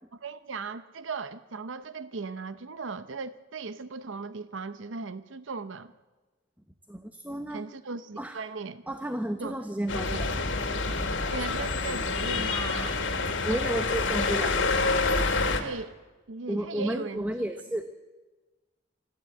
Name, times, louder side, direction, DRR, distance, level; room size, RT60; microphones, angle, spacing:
voice 1, 0.1-5.9 7.5-8.8 9.4-9.6 11.3-13.0 15.6-15.9 16.3-17.5, right 4 dB, 75° right, 13 dB, 0.7 m, -37 dB
voice 2, 6.9-7.7 8.2-8.4 8.9-10.3 13.4-14.6 16.5-17.9, right 1 dB, 10° right, 7 dB, 0.9 m, -32 dB
sound 1, 9.9-15.6, left 3 dB, 70° left, 2.3 m, -27 dB
24.5 x 14.5 x 8.3 m, 1.2 s
head